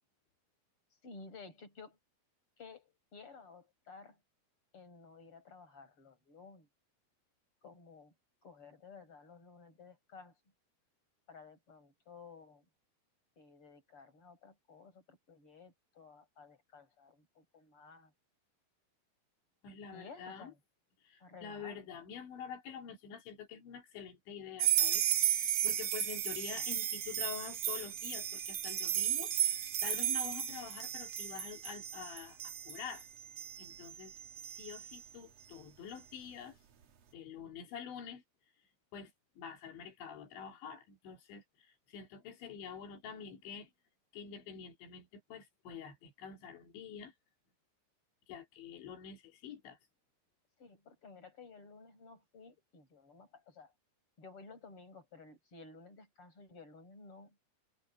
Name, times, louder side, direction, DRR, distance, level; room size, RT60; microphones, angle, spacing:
voice 1, 1.0-2.0 2.6-4.2 4.7-6.7 7.6-8.1 8.4-10.3 11.3-12.6 13.4-18.1 19.9-20.6 21.2-21.9 50.6-53.7 54.2-57.4, left 4 dB, 30° left, 8.2 m, -54 dB
voice 2, 19.6-20.5 21.0-25.0 25.3-33.1 33.6-34.1 34.5-36.6 37.1-38.2 38.9-43.7 44.1-47.1 48.3-49.8, left 7 dB, 90° left, 5.5 m, -47 dB
sound 1, 24.6-35.0, right 11 dB, 55° right, 1.8 m, -34 dB
omnidirectional pair, 5.1 m